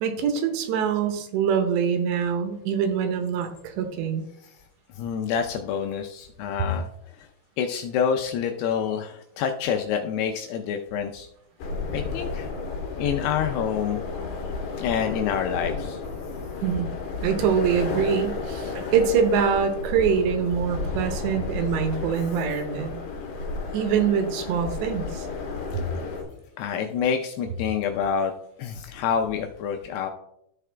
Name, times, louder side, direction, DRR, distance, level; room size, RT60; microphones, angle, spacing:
voice 1, 0.0-4.2 16.6-16.9 17.2-23.0 23.7-25.3 25.7-25.9, right 7 dB, 80° right, 7 dB, 3.0 m, -24 dB
voice 2, 4.9-6.9 7.2-7.3 7.6-11.3 11.9-12.5 13.0-14.0 14.8-16.0 25.7-26.1 26.6-28.3 28.6-30.1, left 7 dB, 80° left, 4 dB, 2.4 m, -27 dB
sound 1, 11.6-26.2, left 4 dB, 60° left, 2.1 m, -32 dB
13.0 x 4.7 x 3.3 m, 0.79 s
omnidirectional pair, 5.2 m